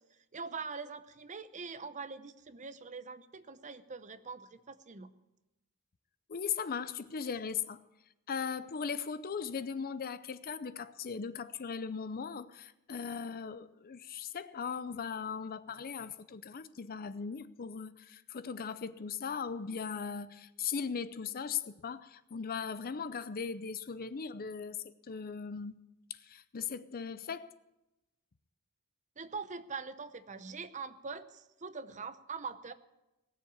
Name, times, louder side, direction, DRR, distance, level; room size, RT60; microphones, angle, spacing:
voice 1, 0.3-5.1 29.2-32.7, right 5 dB, 35° right, 0.7 m, -43 dB
voice 2, 6.3-7.8 8.3-24.8 25.0-25.8 26.2-27.5, left 6 dB, 40° left, 0.5 m, -38 dB
18.5 x 7.2 x 8.5 m
head